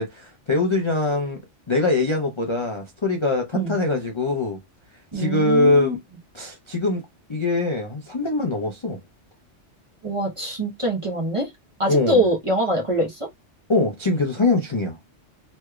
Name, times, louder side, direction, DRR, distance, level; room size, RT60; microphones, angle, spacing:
voice 1, 0.0-1.4 1.7-4.6 5.1-6.0 6.3-7.0 7.3-9.0 11.9-12.2 13.7-15.0, left 2 dB, 35° left, 0.5 m, -22 dB
voice 2, 5.1-5.9 10.0-11.5 11.8-13.3, right 1 dB, 30° right, 0.9 m, -24 dB
3.2 x 3.1 x 2.3 m
omnidirectional pair, 1.3 m